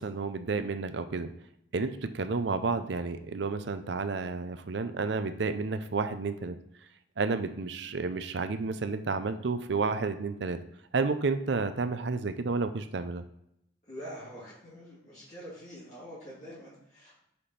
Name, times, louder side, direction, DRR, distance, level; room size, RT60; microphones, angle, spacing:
voice 1, 0.0-1.3 1.7-6.6 7.2-10.6 10.9-13.2, right 4 dB, 65° right, 10 dB, 0.5 m, -31 dB
voice 2, 13.9-17.2, equal, 40° left, -11 dB, 2.5 m, -45 dB
5.1 x 4.2 x 5.7 m, 0.78 s
head